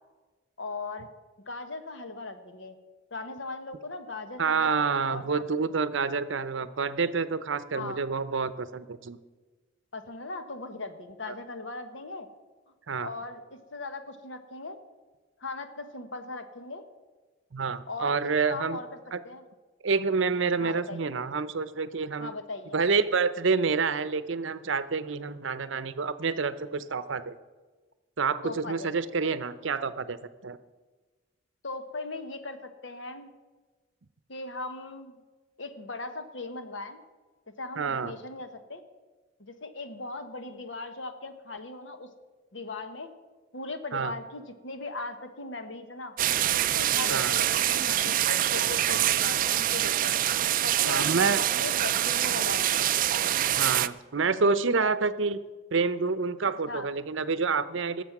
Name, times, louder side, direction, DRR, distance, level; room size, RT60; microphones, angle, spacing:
voice 1, 0.6-1.1 1.5-2.8 3.1-5.7 7.7-8.0 9.9-12.3 13.0-14.8 15.4-16.8 17.9-18.9 19.2-19.4 20.6-21.0 22.2-22.8 28.4-28.9 31.6-33.3 34.3-35.2 35.6-37.0 37.6-38.8 39.4-42.1 42.5-43.1 43.5-46.1 46.5-50.2 50.6-52.9 56.7-56.9, left 3 dB, 65° left, 8 dB, 1.2 m, -39 dB
voice 2, 4.4-9.2 11.3-11.4 12.9-13.1 17.5-18.8 19.1-19.2 19.8-22.3 22.7-27.3 28.2-30.2 30.4-30.6 37.8-38.1 43.9-44.1 47.1-47.3 50.9-51.4 53.5-55.4 55.7-58.0, right 4 dB, 70° right, 14 dB, 0.7 m, -28 dB
sound 1, 46.2-53.9, right 12 dB, 45° right, 0.3 m, -25 dB
19.0 x 7.4 x 6.0 m, 1.3 s
head